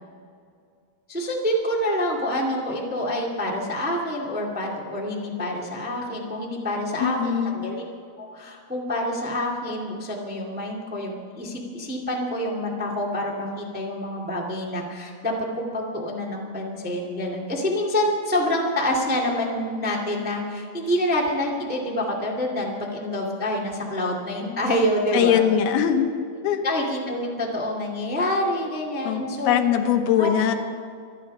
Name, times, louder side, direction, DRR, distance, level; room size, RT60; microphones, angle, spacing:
voice 1, 1.1-7.8 8.2-25.4 26.6-29.6 30.2-30.3, left 1 dB, 5° right, -2 dB, 1.1 m, -27 dB
voice 2, 7.0-7.6 25.1-26.1 26.4-26.6 29.0-30.5, left 9 dB, 90° left, 6 dB, 3.0 m, -21 dB
25.5 x 10.0 x 5.5 m, 2.3 s
omnidirectional pair, 4.3 m